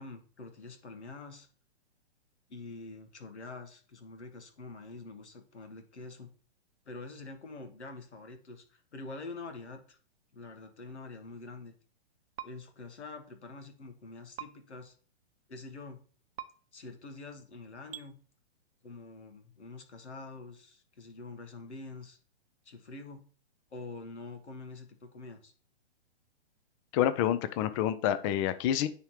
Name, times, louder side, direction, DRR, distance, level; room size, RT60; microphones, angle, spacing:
voice 1, 0.0-1.5 2.5-6.3 6.8-10.0 10.3-11.7 12.4-14.9 15.5-16.0 16.7-18.2 18.8-22.2 22.6-23.2 23.7-25.5, left 3 dB, 90° left, 6 dB, 1.5 m, -46 dB
sound 1, 12.4-12.5 14.4-14.5 16.4-16.5 17.9-18.1, right 11 dB, 60° right, 0.7 m, -40 dB
voice 2, 26.9-28.9, left 11 dB, 30° left, 13 dB, 0.6 m, -28 dB
9.6 x 3.6 x 3.1 m, 0.42 s
hypercardioid pair, 130°, 33 cm